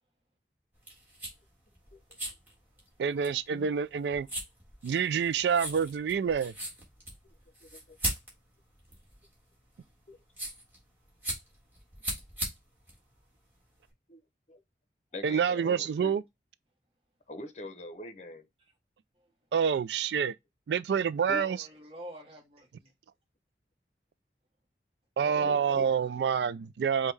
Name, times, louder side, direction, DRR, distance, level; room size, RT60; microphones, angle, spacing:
sound 1, 0.7-13.9, right 1 dB, 10° right, 1.5 m, -40 dB
voice 1, 3.0-4.3 4.8-6.5 15.2-16.2 19.5-20.3 20.7-21.6 25.2-27.1, right 7 dB, 75° right, 0.3 m, -27 dB
voice 2, 7.6-8.0 10.1-10.2 14.1-14.2 14.5-14.6 15.1-16.2 17.3-18.5 21.3-21.4 25.3-25.9, left 1 dB, 40° left, 0.7 m, -43 dB
voice 3, 21.4-22.9 25.2-26.1, equal, 35° right, 1.1 m, -47 dB
5.3 x 2.2 x 3.2 m
head